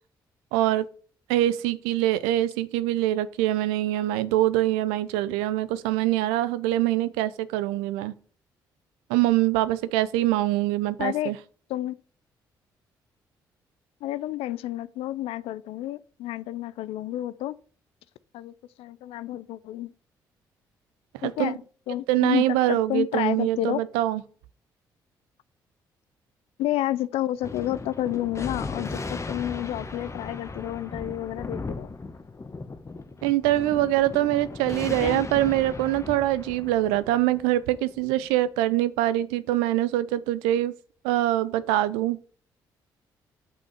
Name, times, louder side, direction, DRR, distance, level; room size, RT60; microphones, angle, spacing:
voice 1, 0.5-0.9 1.3-8.1 9.1-11.4 21.1-21.6 22.1-24.2 33.2-40.7 41.0-42.2, right 14 dB, 80° right, 0.5 m, -24 dB
voice 2, 11.0-11.3 11.7-12.0 14.0-17.6 18.3-19.9 21.2-23.8 26.6-31.9 34.9-35.2, left 14 dB, 70° left, 0.4 m, -30 dB
Thunder, 27.4-38.3, left 3 dB, 30° left, 1.1 m, -37 dB
6.2 x 5.6 x 7.0 m
hypercardioid pair, 45°, 10 cm